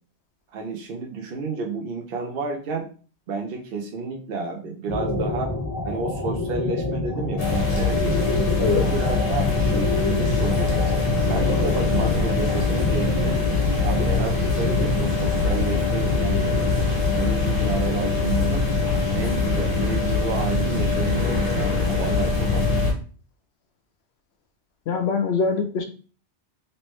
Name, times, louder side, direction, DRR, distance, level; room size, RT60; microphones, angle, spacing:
voice 1, 0.5-2.9 3.3-5.5 5.8-8.3 8.8-13.4 13.8-16.8 17.1-18.7 19.1-22.9, right 4 dB, 60° right, 1 dB, 0.7 m, -31 dB
sound 1, 4.9-21.0, left 2 dB, 30° left, 0.5 m, -30 dB
sound 2, 7.4-22.9, left 3 dB, 50° left, 1.5 m, -23 dB
voice 2, 8.6-8.9 24.9-25.8, left 4 dB, 70° left, 5 dB, 0.9 m, -23 dB
3.2 x 3.0 x 3.1 m, 0.39 s
omnidirectional pair, 1.2 m